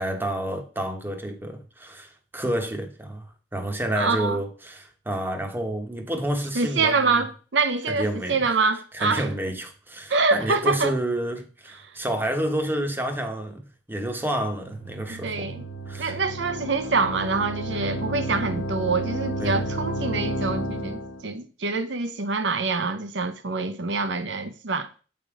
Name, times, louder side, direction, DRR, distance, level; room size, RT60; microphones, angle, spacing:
voice 1, 0.0-3.3 3.5-7.2 7.9-8.4 8.9-15.6 15.9-16.2 19.4-19.7, right 1 dB, 10° right, 0.9 m, -29 dB
voice 2, 4.0-4.4 6.5-9.3 10.1-10.9 15.1-15.6 16.0-24.9, right 4 dB, 75° right, 0.7 m, -25 dB
sound 1, 14.4-21.2, right 1 dB, 90° left, 0.8 m, -32 dB
7.7 x 3.6 x 4.8 m
head